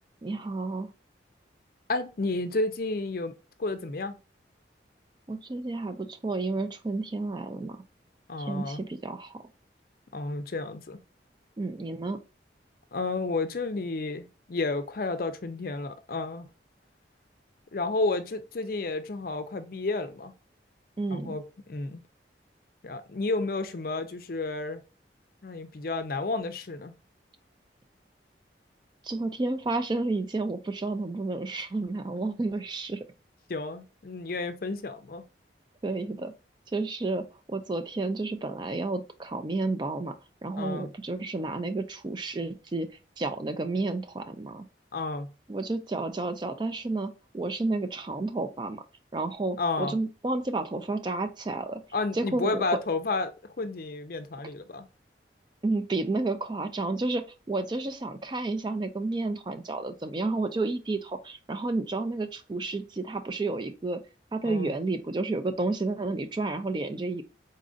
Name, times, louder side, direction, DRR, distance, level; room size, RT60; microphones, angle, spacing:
voice 1, 0.2-0.9 5.3-7.8 8.4-9.4 11.6-12.2 21.0-21.4 29.0-33.0 35.8-36.3 36.7-40.1 40.4-42.9 43.2-44.7 45.5-48.8 49.1-51.8 52.1-52.6 55.6-64.0 64.3-67.2, right 2 dB, 25° right, 0.3 m, -31 dB
voice 2, 1.9-3.3 3.6-4.1 8.3-8.8 10.1-11.0 12.9-16.5 17.7-20.3 21.1-22.0 22.8-24.8 25.4-26.9 33.5-35.2 40.6-40.9 44.9-45.3 49.6-49.9 51.9-54.9 64.4-64.7, left 3 dB, 50° left, 0.5 m, -31 dB
4.0 x 2.5 x 3.7 m
head